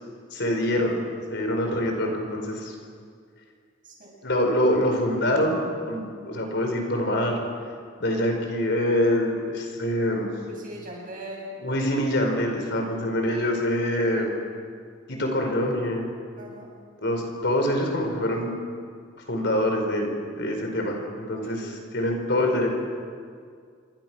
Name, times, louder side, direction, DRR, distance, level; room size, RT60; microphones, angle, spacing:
voice 1, 0.3-1.0 1.3-2.7 4.2-5.6 5.9-7.4 8.0-10.3 11.6-14.3 15.1-16.0 17.0-18.5 19.3-20.1 20.4-22.7, left 1 dB, 65° left, 3 dB, 4.9 m, -25 dB
voice 2, 10.5-11.6 16.4-16.7 21.4-21.7, right 1 dB, 45° right, -2 dB, 7.6 m, -40 dB
27.5 x 24.5 x 6.2 m, 2.1 s
head